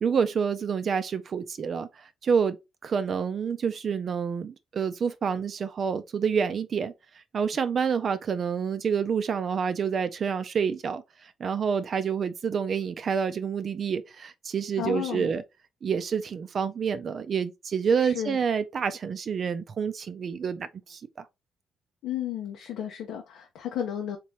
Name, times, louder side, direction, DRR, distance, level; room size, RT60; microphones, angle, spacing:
voice 1, 0.0-6.9 7.3-15.4 15.8-21.0, right 6 dB, 50° right, 0.4 m, -28 dB
voice 2, 14.8-15.3 18.0-18.4 22.0-24.2, left 10 dB, 85° left, 0.7 m, -33 dB
3.7 x 3.0 x 2.8 m
cardioid pair, 90°, 0 cm